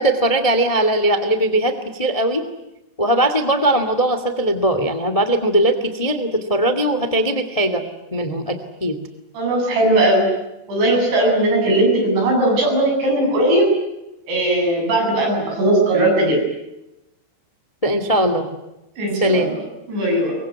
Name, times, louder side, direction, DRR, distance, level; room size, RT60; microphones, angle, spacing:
voice 1, 0.0-2.4 3.0-7.8 8.1-9.0 17.8-18.5 19.2-19.5, right 1 dB, 60° left, 9 dB, 0.3 m, -19 dB
voice 2, 9.4-10.3 10.7-13.7 14.3-16.4 19.0-19.6 19.9-20.4, right 1 dB, 80° right, 1 dB, 10.5 m, -18 dB
24.5 x 22.5 x 9.5 m, 0.94 s
omnidirectional pair, 5.1 m